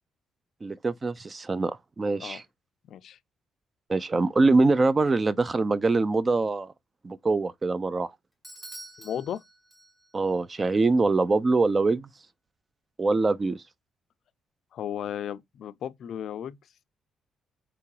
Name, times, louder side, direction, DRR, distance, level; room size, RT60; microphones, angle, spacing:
voice 1, 0.6-2.4 3.9-6.7 7.0-8.1 10.1-12.1 13.0-13.6, right 3 dB, 30° right, 0.4 m, -24 dB
voice 2, 2.9-3.2 9.0-9.4 14.7-16.6, left 9 dB, 70° left, 0.4 m, -35 dB
Bell / Doorbell, 8.4-10.3, right 1 dB, 15° right, 1.0 m, -47 dB
3.4 x 2.9 x 3.1 m
cardioid pair, 90°, 0 cm